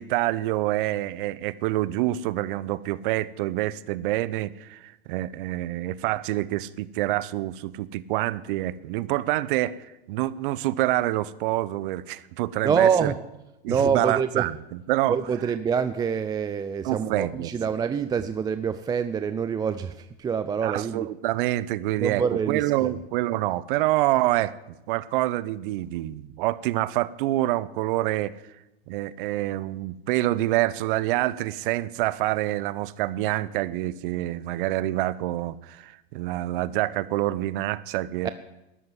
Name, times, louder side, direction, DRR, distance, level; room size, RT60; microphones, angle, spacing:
voice 1, 0.0-9.8 10.1-13.1 13.6-15.2 16.8-17.5 20.6-24.6 24.9-28.3 28.9-38.3, right 16 dB, 55° right, 18 dB, 0.9 m, -27 dB
voice 2, 12.6-13.2 13.7-14.5 15.1-21.1 22.0-22.9 38.2-38.3, right 6 dB, 15° right, 12 dB, 0.4 m, -26 dB
12.5 x 11.5 x 9.7 m, 0.97 s
hypercardioid pair, 125°, 31 cm